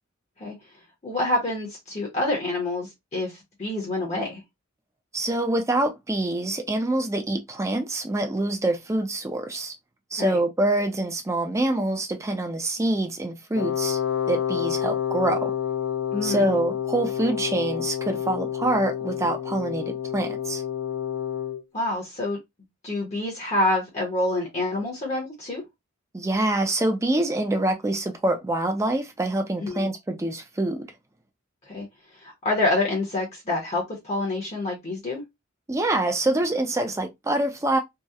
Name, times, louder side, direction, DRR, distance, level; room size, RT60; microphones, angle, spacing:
voice 1, 1.0-4.4 10.2-10.4 16.1-16.5 21.7-22.4 22.8-25.6 29.6-29.9 31.7-31.9 32.2-35.2, left 2 dB, 30° left, 0.7 m, -27 dB
voice 2, 5.1-9.7 10.1-14.0 14.3-15.5 16.2-20.6 26.1-30.9 35.7-37.8, right 1 dB, 15° right, 0.4 m, -25 dB
Wind instrument woodwind instrument, 13.5-21.6, left 9 dB, 75° left, 0.4 m, -29 dB
2.7 x 2.0 x 2.3 m
head